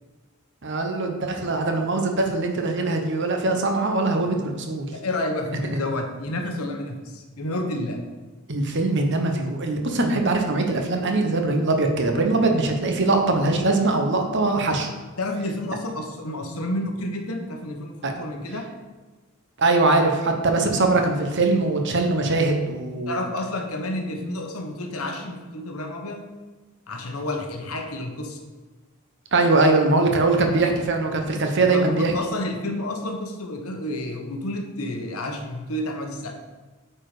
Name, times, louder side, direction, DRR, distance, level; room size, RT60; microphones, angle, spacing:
voice 1, 0.6-4.9 8.5-14.9 18.0-18.1 19.6-23.2 29.3-32.1, right 2 dB, 55° right, 4 dB, 1.1 m, -22 dB
voice 2, 4.9-8.0 15.2-18.7 23.1-26.3 26.9-28.4 31.6-36.4, left 1 dB, 80° left, 3 dB, 1.2 m, -30 dB
8.6 x 4.4 x 5.0 m, 1.3 s
head